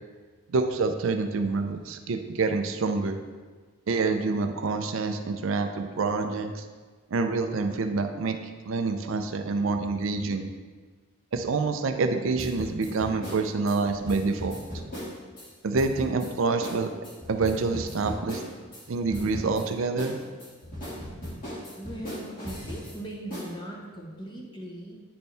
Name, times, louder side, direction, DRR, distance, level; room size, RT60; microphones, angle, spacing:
voice 1, 0.5-3.2 3.9-6.6 7.1-8.4 8.6-10.5 11.3-14.6 15.6-16.9 17.3-18.4 18.9-20.2, right 4 dB, 70° right, 6 dB, 0.5 m, -27 dB
sound 1, 12.4-15.5 15.7-16.3 16.6-16.8 17.0-18.8 19.1-19.6 20.0-22.9 23.3-23.5, equal, 40° left, 2.0 m, -37 dB
voice 2, 21.8-25.0, right 1 dB, 20° left, -2 dB, 1.0 m, -39 dB
9.3 x 4.3 x 3.3 m, 1.4 s
head